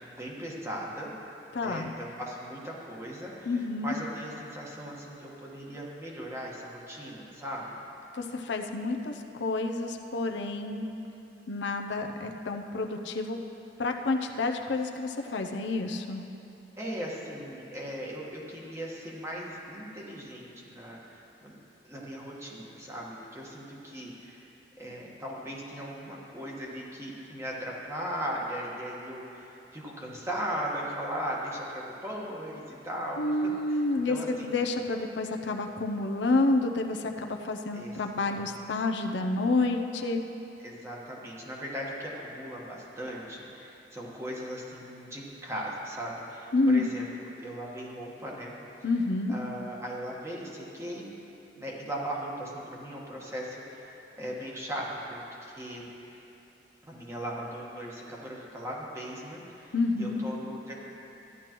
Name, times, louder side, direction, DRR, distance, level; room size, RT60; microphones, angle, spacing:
voice 1, 0.0-1.1 1.6-7.8 16.8-21.0 21.4-21.5 21.8-24.5 24.8-33.4 33.7-33.8 34.1-34.6 37.7-38.0 38.2-38.6 40.6-47.1 47.4-48.6 49.3-51.1 51.5-56.2 56.9-60.7, equal, 15° right, -3 dB, 1.3 m, -38 dB
voice 2, 1.5-1.9 3.5-3.9 8.1-9.1 9.4-10.9 11.5-13.4 13.8-16.2 33.2-40.2 46.5-46.8 48.8-49.3 59.7-60.2, left 2 dB, 75° left, 4 dB, 0.6 m, -29 dB
13.5 x 10.5 x 3.0 m, 3.0 s
head